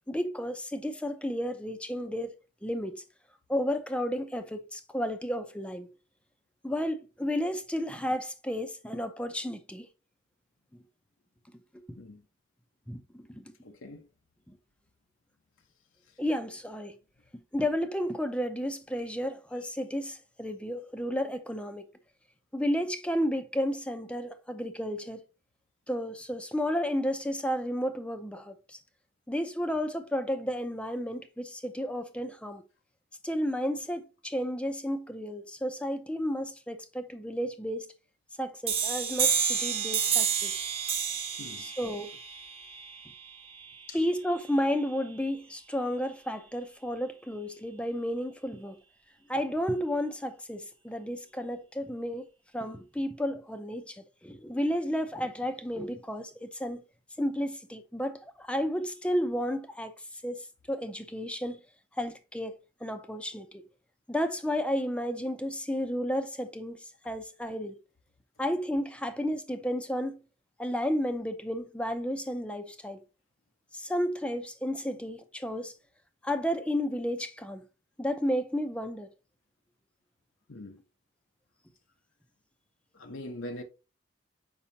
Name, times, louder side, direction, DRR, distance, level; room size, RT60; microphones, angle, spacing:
voice 1, 0.1-2.3 2.6-3.0 3.5-5.9 6.6-9.9 11.7-12.0 12.9-13.5 14.5-14.6 16.2-17.0 17.5-21.9 22.5-25.2 25.9-28.8 29.3-32.6 33.2-37.9 38.4-40.6 41.6-42.2 43.9-48.8 49.3-52.3 52.5-56.8 57.2-59.9 60.2-61.6 62.0-62.5 62.8-63.6 64.1-66.8 67.0-67.8 68.4-70.2 70.6-73.0 73.7-75.7 76.2-77.6 78.0-79.1, equal, 5° left, 0.6 m, -32 dB
voice 2, 13.6-14.0 41.4-41.7 43.9-44.0 80.5-80.8 82.9-83.6, left 1 dB, 85° left, 1.0 m, -42 dB
sound 1, 38.7-44.1, right 7 dB, 30° right, 1.2 m, -30 dB
7.0 x 5.5 x 2.8 m
head